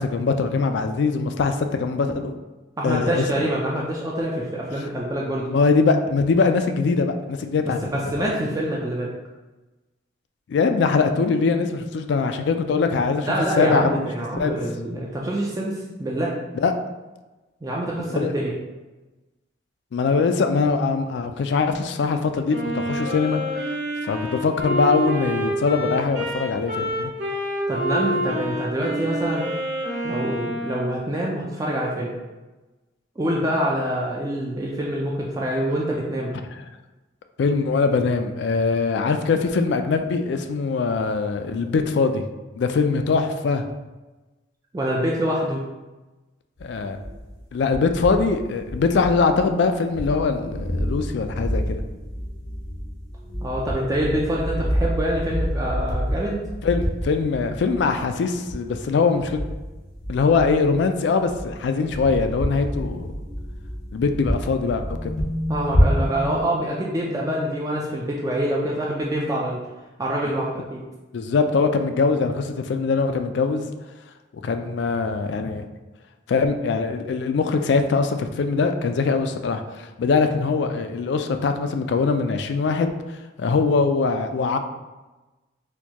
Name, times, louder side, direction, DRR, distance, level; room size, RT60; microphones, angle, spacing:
voice 1, 0.0-2.4 2.8-3.2 5.5-7.8 8.1-8.3 10.5-14.1 14.4-14.6 16.5-16.7 18.2-18.3 19.9-23.4 24.0-27.1 37.4-42.2 42.6-43.6 46.6-47.0 47.5-51.8 56.6-59.4 60.1-63.1 63.9-65.1 71.1-73.7 74.4-75.7 76.3-82.9 83.4-84.6, left 4 dB, 60° left, 7 dB, 0.3 m, -22 dB
voice 2, 2.8-5.5 7.6-9.1 13.3-16.4 17.6-18.6 27.7-29.5 30.0-32.1 33.2-36.3 44.7-45.6 53.4-56.4 65.5-69.6 70.0-70.8, right 1 dB, 15° right, -3 dB, 0.3 m, -25 dB
Wind instrument woodwind instrument, 22.5-31.0, equal, 60° right, 1.5 m, -27 dB
sound 1, 46.6-47.4 47.7-49.6 49.9-60.9 61.2-66.4, equal, 90° left, 1.0 m, -28 dB
4.4 x 2.3 x 2.8 m, 1.1 s
head